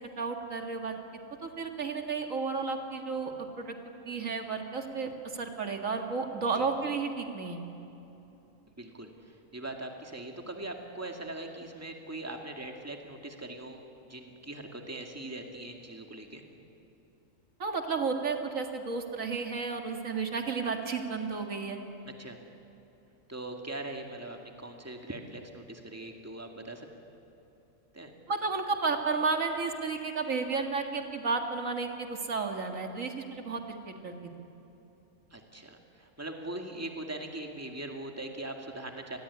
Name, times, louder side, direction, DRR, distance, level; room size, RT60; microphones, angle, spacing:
voice 1, 0.2-1.0 1.4-3.3 3.6-3.8 4.1-7.6 17.6-21.8 28.3-34.1, right 4 dB, 80° right, 4 dB, 2.3 m, -32 dB
voice 2, 8.8-13.8 14.1-16.4 22.1-22.4 23.3-26.9 27.9-28.1 35.3-39.2, right 2 dB, 10° right, 3 dB, 2.2 m, -41 dB
28.0 x 20.0 x 9.8 m, 2.9 s
omnidirectional pair, 1.4 m